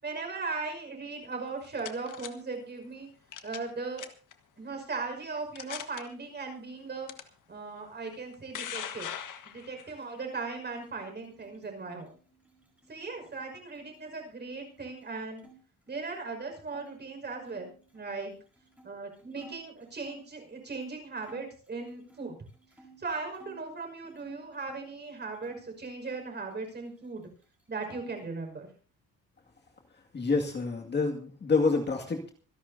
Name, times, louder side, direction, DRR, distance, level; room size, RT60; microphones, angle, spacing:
voice 1, 0.0-3.1 3.4-4.1 4.6-7.1 7.5-9.1 9.4-12.1 12.9-15.5 15.9-18.3 18.8-22.4 23.0-27.3 27.7-28.7, right 4 dB, 30° right, 4 dB, 5.7 m, -38 dB
sound 1, 1.4-2.3 3.3-3.7 4.0-4.3 5.0-5.1 5.5-6.0 7.1-7.2 8.1-9.9, left 9 dB, 60° left, 1.7 m, -39 dB
sound 2, 9.8-15.6 15.9-16.9 17.5-20.3 20.8-20.9 21.2-23.6 24.0-25.7 26.0-27.2 27.4-28.3, right 3 dB, 5° right, 4.5 m, -57 dB
voice 2, 30.1-32.3, left 4 dB, 30° left, 1 dB, 2.3 m, -27 dB
26.0 x 11.5 x 2.8 m, 0.41 s
cardioid pair, 145°, 34 cm